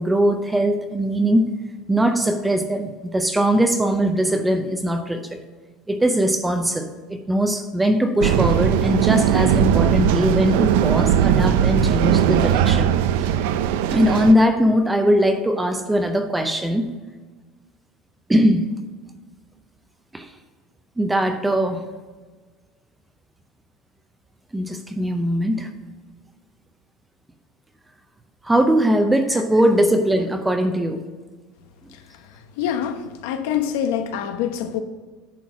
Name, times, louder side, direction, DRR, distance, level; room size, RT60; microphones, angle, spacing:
voice 1, 0.0-1.6 1.9-5.4 5.9-12.9 13.9-16.9 18.3-18.7 20.1-20.3 21.0-21.9 24.5-25.7 28.4-31.0, equal, 5° right, 7 dB, 0.6 m, -20 dB
sound 1, 8.2-14.3, right 9 dB, 75° right, 0.5 m, -19 dB
voice 2, 32.6-34.8, left 9 dB, 75° left, 7 dB, 1.0 m, -25 dB
10.0 x 4.4 x 6.1 m, 1.4 s
cardioid pair, 170°, 0 cm